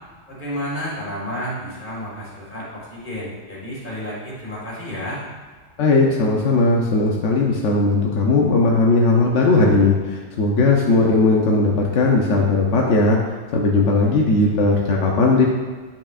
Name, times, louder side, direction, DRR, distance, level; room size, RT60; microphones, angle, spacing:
voice 1, 0.3-5.2, equal, 45° left, -6 dB, 2.1 m, -31 dB
voice 2, 5.8-13.2 13.5-15.5, left 3 dB, 90° left, -1 dB, 1.1 m, -17 dB
9.1 x 5.8 x 2.4 m, 1.4 s
omnidirectional pair, 1.2 m